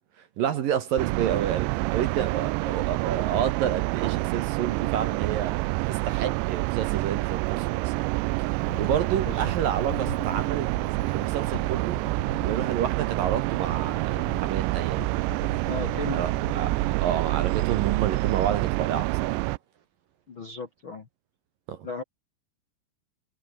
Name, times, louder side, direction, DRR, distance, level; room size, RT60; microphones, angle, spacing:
voice 1, 0.4-5.6 5.9-8.1 8.4-10.7 11.1-12.0 12.4-15.1 16.1-16.8 17.0-19.4 21.7-21.8, right 9 dB, 60° right, 2.6 m, -29 dB
sound 1, 1.0-19.6, right 24 dB, 85° right, 2.6 m, -27 dB
sound 2, 8.7-17.0, left 7 dB, 75° left, 6.4 m, -42 dB
voice 2, 15.6-16.2 20.3-21.1 21.8-22.0, left 4 dB, 45° left, 1.7 m, -36 dB
omnidirectional pair, 5.3 m